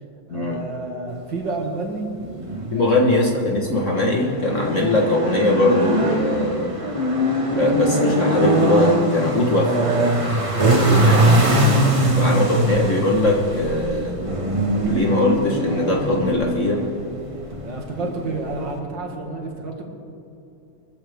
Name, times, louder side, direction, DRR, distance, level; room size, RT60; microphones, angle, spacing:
voice 1, 0.3-2.1 2.7-3.0 11.8-12.5 17.6-19.8, right 2 dB, 60° right, 0 dB, 2.6 m, -30 dB
sound 1, 2.1-18.8, right 1 dB, 20° right, 1.3 m, -22 dB
voice 2, 2.7-6.8 7.5-9.7 10.7-11.2 12.2-14.2 14.9-16.8 18.0-18.1, left 2 dB, 40° left, 0 dB, 1.4 m, -21 dB
22.5 x 14.5 x 3.5 m, 2.7 s
omnidirectional pair, 2.3 m